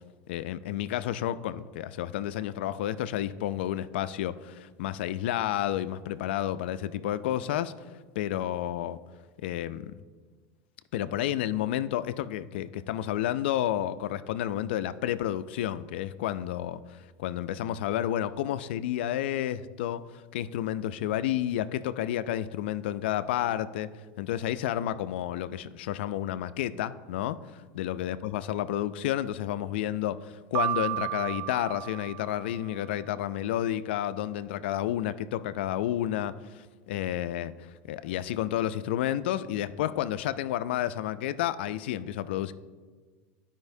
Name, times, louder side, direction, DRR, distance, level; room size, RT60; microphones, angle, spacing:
voice 1, 0.3-7.7 8.2-9.0 9.4-9.9 10.9-16.8 17.2-23.9 24.2-27.4 27.7-37.5 37.9-42.5, left 12 dB, 80° left, 14 dB, 0.4 m, -31 dB
Piano, 30.6-32.7, right 14 dB, 55° right, 0.5 m, -33 dB
12.0 x 5.1 x 2.7 m, 1.5 s
supercardioid pair, 115°, 6 cm